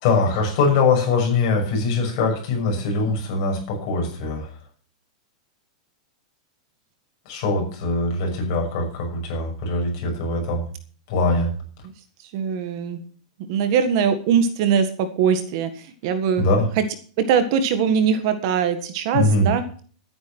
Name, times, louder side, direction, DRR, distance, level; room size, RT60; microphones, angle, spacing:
voice 1, 0.0-4.5 7.3-10.6 11.1-11.5 16.4-16.7 19.1-19.5, left 3 dB, 40° left, 2 dB, 6.3 m, -22 dB
voice 2, 12.3-13.0 13.5-15.7 16.0-16.5 16.8-16.9 17.3-19.6, right 7 dB, 40° right, 9 dB, 1.7 m, -21 dB
12.0 x 9.8 x 6.2 m, 0.43 s
supercardioid pair, 175°, 4 cm